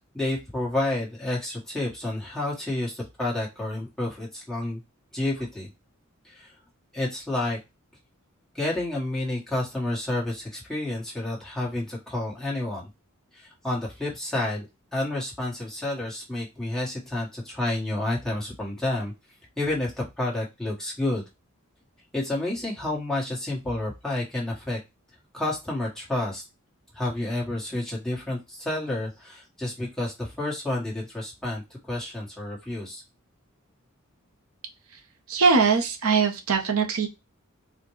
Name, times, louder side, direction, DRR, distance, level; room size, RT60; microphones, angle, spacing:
voice 1, 0.1-4.8 5.1-5.7 6.2-6.5 6.9-7.6 8.5-12.9 13.3-14.7 14.9-19.1 19.6-21.2 22.1-24.8 25.3-26.4 26.9-31.6 31.9-33.0, left 1 dB, ahead, -5 dB, 1.2 m, -30 dB
voice 2, 35.3-37.1, right 5 dB, 85° right, 5 dB, 0.8 m, -21 dB
4.1 x 2.2 x 3.0 m, 0.23 s
head